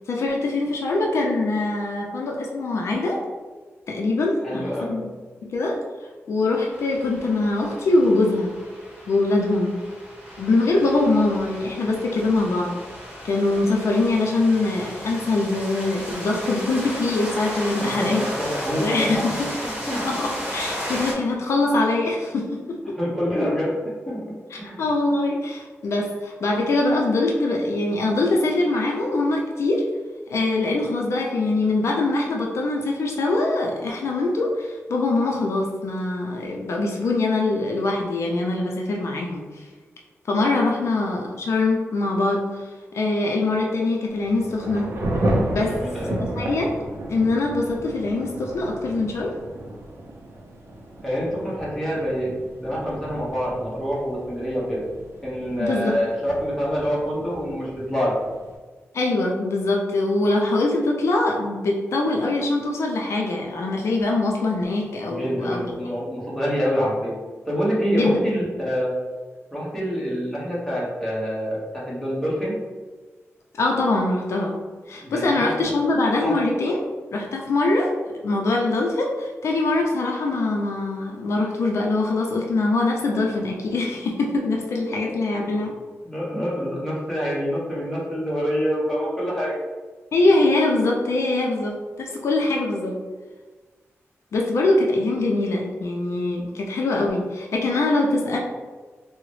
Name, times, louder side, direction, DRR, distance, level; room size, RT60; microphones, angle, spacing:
voice 1, 0.1-3.2 3.9-5.1 5.4-5.8 6.3-8.5 9.1-9.7 10.4-12.8 13.2-18.3 18.8-19.5 20.0-22.8 24.5-29.9 30.3-39.7 40.3-42.7 42.9-44.9 45.5-45.8 46.4-46.8 47.1-49.4 55.6-56.0 58.9-65.6 67.9-68.2 73.6-74.6 74.9-76.8 77.1-77.9 78.2-85.7 90.1-93.0 94.3-98.4, left 2 dB, 65° left, 0 dB, 0.4 m, -23 dB
voice 2, 4.4-5.0 17.8-20.0 23.0-24.2 24.6-24.8 40.8-40.9 45.6-46.2 51.0-54.8 55.2-58.2 65.1-67.2 67.5-68.9 69.5-72.6 75.0-75.6 76.2-76.4 85.0-85.5 86.0-89.6, equal, 5° left, -7 dB, 0.9 m, -26 dB
sound 1, 6.7-21.1, equal, 15° right, 1.4 m, -34 dB
Thunder / Rain, 44.1-58.5, right 1 dB, 60° right, 0.5 m, -32 dB
3.7 x 2.0 x 3.0 m, 1.4 s
wide cardioid pair, 160°, 5 cm